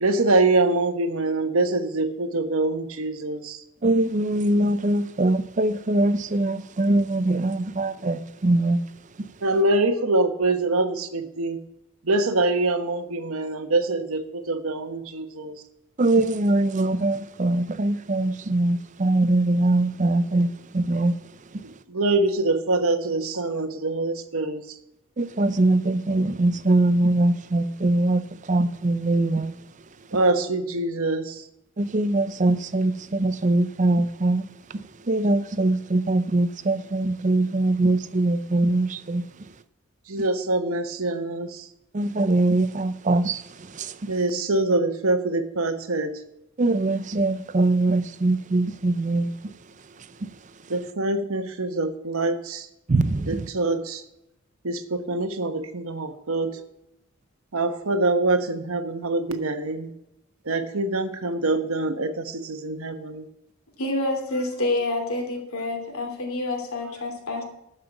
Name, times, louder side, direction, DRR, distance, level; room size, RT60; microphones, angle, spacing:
voice 1, 0.0-3.6 9.4-11.6 12.0-15.5 21.6-24.6 30.1-31.4 40.1-41.6 44.1-46.2 50.7-52.7 53.3-54.0 54.6-56.6 57.5-59.9 60.5-63.2, right 2 dB, 80° right, 1.2 m, -24 dB
voice 2, 3.8-8.8 16.0-21.2 25.2-28.2 28.5-29.6 31.8-34.4 35.1-39.2 41.9-43.4 43.7-43.9 46.6-49.3 52.9-53.5, right 2 dB, 35° right, 0.5 m, -22 dB
voice 3, 63.8-67.4, left 2 dB, 85° left, 2.8 m, -27 dB
13.0 x 5.7 x 7.0 m
head